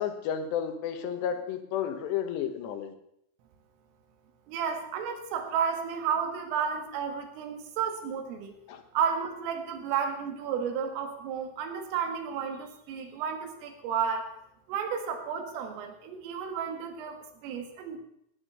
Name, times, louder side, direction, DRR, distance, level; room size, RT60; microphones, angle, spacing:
voice 1, 0.0-2.9 8.7-8.8, left 8 dB, 70° left, 8 dB, 2.9 m, -32 dB
voice 2, 4.5-8.5 8.9-14.3 14.7-18.0, right 7 dB, 80° right, 5 dB, 4.5 m, -32 dB
16.5 x 9.7 x 6.6 m, 0.73 s
omnidirectional pair, 5.8 m